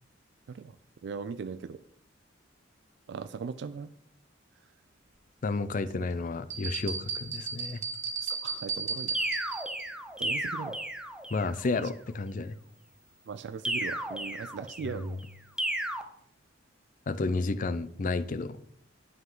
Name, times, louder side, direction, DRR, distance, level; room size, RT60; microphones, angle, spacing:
voice 1, 1.0-1.8 3.1-3.9 5.9-6.1 8.2-9.2 10.2-10.8 13.3-15.2, right 5 dB, 65° right, 13 dB, 0.3 m, -39 dB
voice 2, 5.4-7.8 11.3-12.5 14.8-15.1 17.1-18.6, left 3 dB, 45° left, 13 dB, 0.4 m, -31 dB
sound 1, 6.5-9.9, right 5 dB, 40° right, 1.3 m, -35 dB
sound 2, 9.1-11.6 13.6-15.0 15.6-16.0, right 1 dB, 5° right, 0.6 m, -33 dB
9.4 x 5.7 x 3.8 m, 0.71 s
head